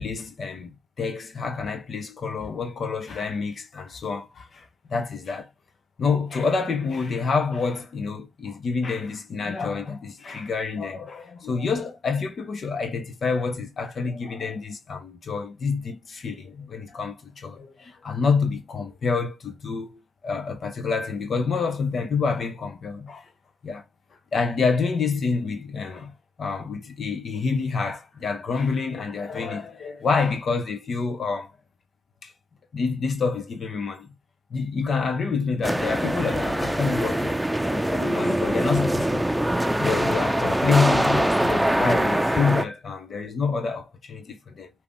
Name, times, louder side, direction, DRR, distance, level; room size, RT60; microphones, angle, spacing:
voice 1, 0.0-5.5 6.0-23.2 23.6-23.8 24.3-26.1 26.4-31.5 32.2-32.3 32.7-34.1 34.5-37.4 37.7-39.3 39.8-44.7, left 5 dB, 65° left, 1.1 m, -27 dB
sound 1, 35.6-42.6, right 1 dB, 10° right, 0.7 m, -23 dB
5.1 x 3.0 x 3.2 m
supercardioid pair, 40°, 0 cm